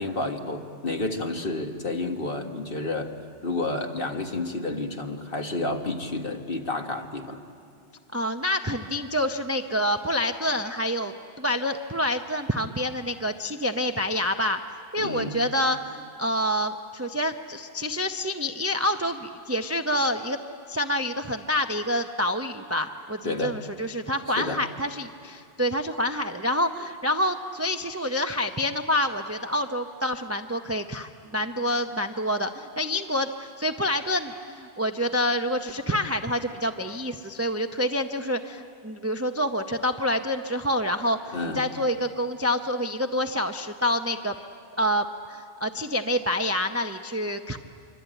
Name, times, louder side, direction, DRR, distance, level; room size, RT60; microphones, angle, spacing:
voice 1, 0.0-3.1 3.4-7.4 15.0-15.3 23.2-23.6 24.4-24.6 41.3-41.6, left 2 dB, 45° left, 4 dB, 1.8 m, -30 dB
voice 2, 8.1-14.6 14.9-20.4 20.7-44.3 44.8-47.6, left 1 dB, 15° right, 6 dB, 0.5 m, -27 dB
25.0 x 24.5 x 9.0 m, 2.4 s
omnidirectional pair, 1.3 m